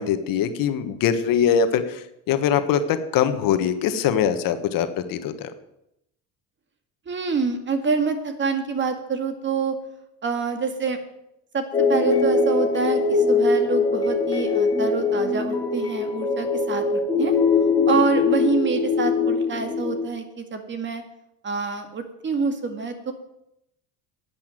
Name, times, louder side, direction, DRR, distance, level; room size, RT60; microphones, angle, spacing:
voice 1, 0.0-5.5, left 8 dB, 60° left, 9 dB, 1.4 m, -22 dB
voice 2, 7.1-9.8 10.2-11.0 11.5-11.6 11.9-17.3 17.9-21.0 21.4-23.1, right 4 dB, 30° right, 7 dB, 2.1 m, -26 dB
sound 1, 11.7-20.1, left 4 dB, 10° left, 3.5 m, -22 dB
11.5 x 8.5 x 9.1 m, 0.82 s
cardioid pair, 130°, 37 cm